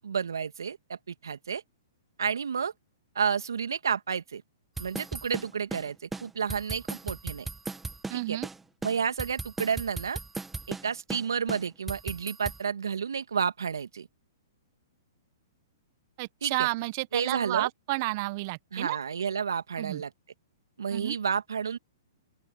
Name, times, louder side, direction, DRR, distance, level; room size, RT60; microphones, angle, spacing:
voice 1, 0.0-1.6 2.2-2.7 3.1-4.4 4.8-7.5 8.1-8.4 8.8-10.2 10.7-14.1 16.4-16.7 17.1-17.7 18.7-20.1 20.8-21.8, right 6 dB, 75° right, 2.4 m, -31 dB
sound 1, 4.8-5.9 6.1-6.2 6.5-8.2 8.4-8.6 8.8-10.9 11.1-11.2 11.5-12.6, right 3 dB, 10° right, 2.1 m, -36 dB
voice 2, 8.1-8.5 16.2-19.0 19.8-20.0 20.9-21.1, right 22 dB, 45° right, 1.3 m, -31 dB
open air
hypercardioid pair, 120°, 2 cm